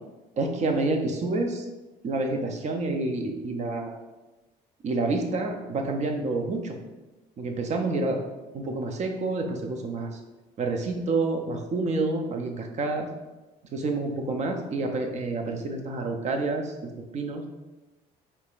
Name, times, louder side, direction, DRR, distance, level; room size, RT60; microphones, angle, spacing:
voice 1, 0.4-1.6 2.0-4.0 4.8-6.8 7.4-8.2 8.5-10.1 10.6-13.1 13.7-17.4, right 3 dB, 45° right, 4 dB, 0.6 m, -28 dB
4.9 x 3.3 x 2.5 m, 1.1 s
cardioid pair, 110°, 17 cm